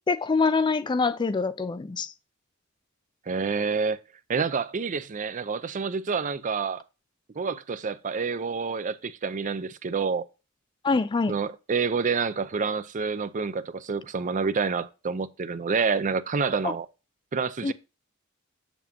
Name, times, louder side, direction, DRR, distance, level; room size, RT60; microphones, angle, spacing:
voice 1, 0.1-2.1 10.8-11.3 16.6-16.7 17.6-17.7, left 4 dB, 20° left, 0.3 m, -25 dB
voice 2, 3.3-4.0 4.3-6.8 7.4-10.2 11.3-16.9 17.3-17.7, right 5 dB, 35° right, 0.5 m, -28 dB
7.2 x 7.1 x 2.8 m
head